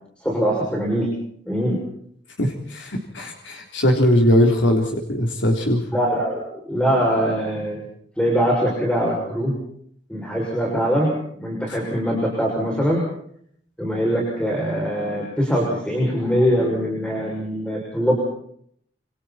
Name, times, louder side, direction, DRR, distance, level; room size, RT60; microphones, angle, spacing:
voice 1, 0.2-1.1 1.5-1.8 5.9-7.8 8.2-9.5 10.1-11.1 11.4-13.0 13.8-18.2, equal, 5° left, -2 dB, 6.7 m, -22 dB
voice 2, 2.4-5.8, left 1 dB, 85° left, 2 dB, 3.6 m, -20 dB
28.5 x 27.5 x 4.4 m, 0.66 s
head